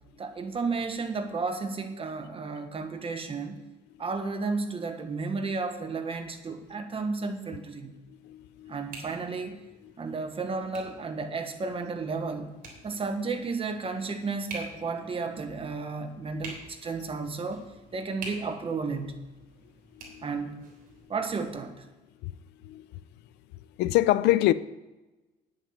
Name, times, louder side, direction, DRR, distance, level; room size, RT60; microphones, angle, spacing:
voice 1, 0.2-3.6 4.0-8.0 8.7-9.6 10.0-17.6 17.9-19.3 20.2-20.6 21.1-21.9, right 4 dB, 35° right, 1.4 m, -33 dB
sound 1, 6.5-21.6, right 2 dB, 55° right, 3.5 m, -49 dB
voice 2, 8.2-8.8 20.0-20.3 22.2-22.3 22.6-22.9 23.8-24.5, left 16 dB, 85° left, 0.5 m, -25 dB
9.5 x 8.0 x 7.2 m
cardioid pair, 110°, 17 cm